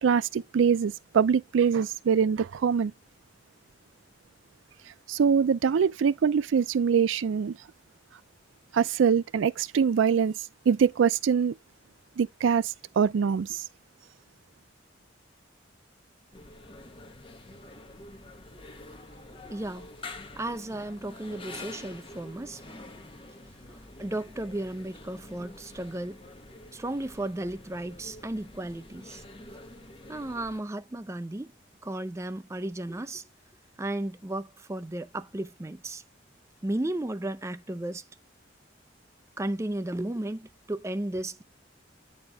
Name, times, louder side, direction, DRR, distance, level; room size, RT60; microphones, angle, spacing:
voice 1, 0.0-2.9 5.1-7.6 8.7-10.3 10.7-11.5 12.2-13.6, right 6 dB, 85° right, 0.4 m, -24 dB
sound 1, 16.3-30.6, left 2 dB, 25° left, 1.0 m, -47 dB
voice 2, 19.5-19.9 20.4-22.6 24.0-26.2 26.7-29.2 30.1-31.5 31.8-33.2 33.8-36.0 36.6-38.0 39.4-41.4, right 1 dB, 15° right, 0.4 m, -34 dB
8.8 x 4.3 x 3.4 m
head